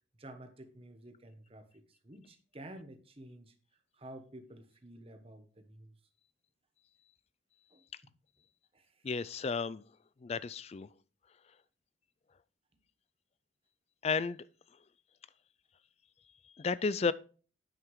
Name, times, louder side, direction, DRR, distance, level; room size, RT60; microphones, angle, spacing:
voice 1, 0.2-3.5 3.9-6.0 7.7-7.8 8.7-9.1 12.7-12.8, right 1 dB, 30° right, 1.1 m, -51 dB
voice 2, 9.0-9.8 10.2-10.9 14.0-14.4 16.6-17.1, left 4 dB, 30° left, 0.3 m, -32 dB
9.0 x 5.8 x 4.7 m
head